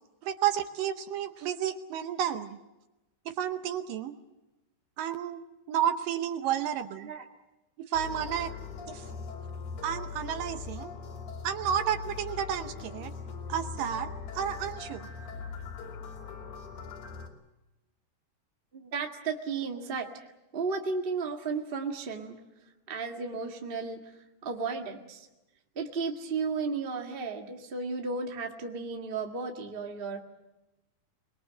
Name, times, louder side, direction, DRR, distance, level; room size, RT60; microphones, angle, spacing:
voice 1, 0.2-2.6 3.3-4.2 5.0-5.4 5.7-7.1 7.9-8.6 8.9-9.1 9.8-10.9 11.4-13.1 13.5-15.1, right 10 dB, 70° right, 8 dB, 2.3 m, -31 dB
sound 1, 7.9-17.3, left 5 dB, 60° left, 4.4 m, -41 dB
voice 2, 18.7-20.3 20.5-22.4 22.9-24.0 24.4-25.3 25.7-30.2, right 4 dB, 85° right, 2 dB, 0.5 m, -34 dB
25.0 x 21.5 x 7.7 m, 1.0 s
omnidirectional pair, 4.7 m